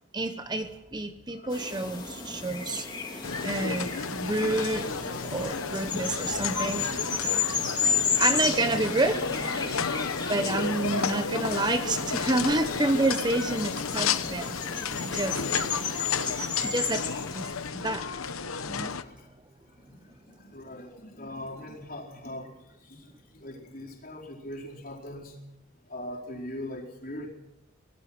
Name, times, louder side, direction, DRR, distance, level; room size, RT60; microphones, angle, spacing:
voice 1, 0.1-7.6 7.9-15.4 16.6-17.1 17.3-17.5 17.7-18.1 18.7-19.0, right 2 dB, 20° right, 9 dB, 0.8 m, -29 dB
sound 1, 1.5-17.7, left 6 dB, 20° left, 2.9 m, -33 dB
voice 2, 2.4-2.8 3.3-3.4 3.8-4.0 6.0-6.2 12.4-12.6 15.9-16.5 17.8-17.9 18.7-19.3 19.7-25.4 25.9-27.3, left 1 dB, 45° left, -2 dB, 4.8 m, -42 dB
sound 2, 3.2-19.0, left 5 dB, 85° left, 1.0 m, -32 dB
25.0 x 19.0 x 6.1 m, 0.87 s
head